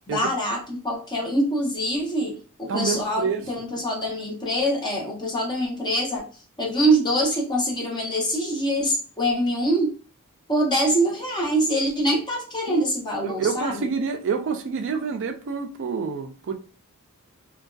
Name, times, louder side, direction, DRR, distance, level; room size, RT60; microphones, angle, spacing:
voice 1, 0.1-6.3 6.6-9.9 10.5-13.9, right 1 dB, 20° left, 0.7 m, -24 dB
voice 2, 2.7-3.4 12.7-12.8 13.2-16.5, right 5 dB, 55° right, 0.4 m, -27 dB
2.5 x 2.2 x 2.2 m
head